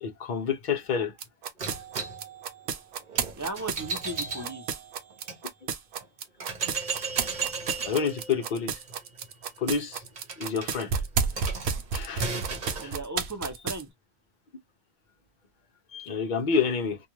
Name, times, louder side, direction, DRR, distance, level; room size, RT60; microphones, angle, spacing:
voice 1, 0.0-1.1 7.8-8.7 9.6-10.0 10.4-10.9 11.9-12.5 12.8-12.9 15.9-17.0, left 6 dB, 55° left, 0.7 m, -28 dB
sound 1, 1.2-13.8, right 6 dB, 75° right, 0.8 m, -31 dB
sound 2, 1.6-5.4 6.0-6.1 6.4-12.9, right 4 dB, 45° right, 1.0 m, -36 dB
voice 2, 3.4-4.7 12.7-13.9, right 1 dB, 20° right, 0.6 m, -36 dB
2.4 x 2.3 x 2.9 m
omnidirectional pair, 1.1 m